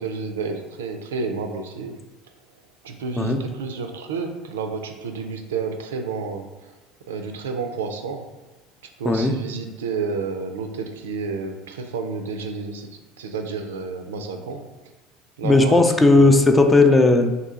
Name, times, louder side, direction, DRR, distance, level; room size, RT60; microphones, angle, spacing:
voice 1, 0.0-2.0 2.8-6.7 7.1-8.3 9.0-12.9 13.2-14.6 15.4-16.4, right 4 dB, 90° right, 5 dB, 0.4 m, -30 dB
voice 2, 9.0-9.4 15.4-17.3, left 2 dB, 20° left, 6 dB, 0.4 m, -16 dB
2.7 x 2.7 x 3.7 m, 1.2 s
hypercardioid pair, 80°, 0 cm